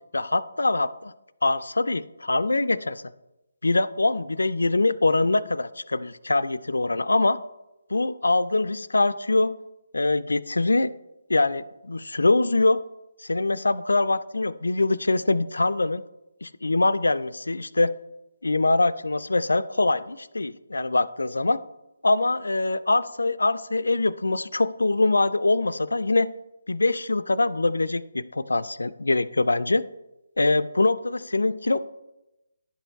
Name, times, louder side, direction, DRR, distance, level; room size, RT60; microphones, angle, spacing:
voice 1, 0.1-1.1 1.4-3.0 3.6-7.4 7.9-9.6 9.9-10.9 11.3-12.8 13.2-16.0 16.4-17.9 18.4-21.6 22.0-26.3 26.7-29.8 30.4-31.8, left 2 dB, 85° left, 14 dB, 0.3 m, -23 dB
10.0 x 4.6 x 4.5 m, 0.97 s
figure-of-eight pair, 155°, 0 cm